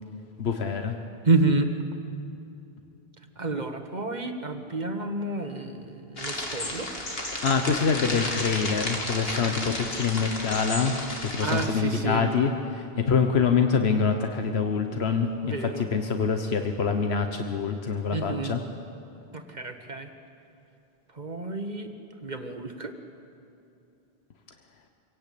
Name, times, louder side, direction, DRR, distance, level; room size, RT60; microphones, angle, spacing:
voice 1, 0.4-1.0 7.4-15.5 15.9-18.6, left 5 dB, 90° left, 5 dB, 1.4 m, -25 dB
voice 2, 1.2-1.7 3.4-6.9 11.4-12.3 15.4-15.9 18.1-18.6 19.3-20.1 21.1-21.9 22.2-22.9, right 3 dB, 45° right, 6 dB, 1.5 m, -29 dB
sound 1, 6.2-11.7, left 1 dB, 70° left, 2.8 m, -32 dB
25.5 x 17.5 x 8.5 m, 2.7 s
omnidirectional pair, 1.0 m